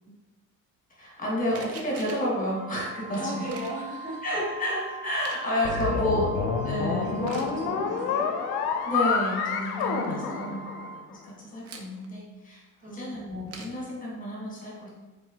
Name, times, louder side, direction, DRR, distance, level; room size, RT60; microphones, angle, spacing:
voice 1, 1.0-3.5 4.2-6.3 6.7-7.1 8.8-10.7 11.1-15.0, equal, 20° left, -5 dB, 1.3 m, -30 dB
sound 1, 1.5-2.3 3.5-3.8 5.0-5.5 7.2-7.6 9.4-9.5 9.7-10.2 11.6-12.1 13.5-13.8, right 4 dB, 40° right, 0.5 m, -44 dB
Wind instrument woodwind instrument, 2.5-11.1, right 4 dB, 75° right, 0.9 m, -42 dB
voice 2, 3.1-4.2 5.7-8.3 9.7-10.6 12.8-13.3, right 1 dB, 20° right, -7 dB, 1.0 m, -37 dB
sound 2, 5.6-11.1, left 6 dB, 90° left, 0.6 m, -29 dB
4.7 x 4.1 x 2.8 m, 1.1 s
cardioid pair, 155°, 37 cm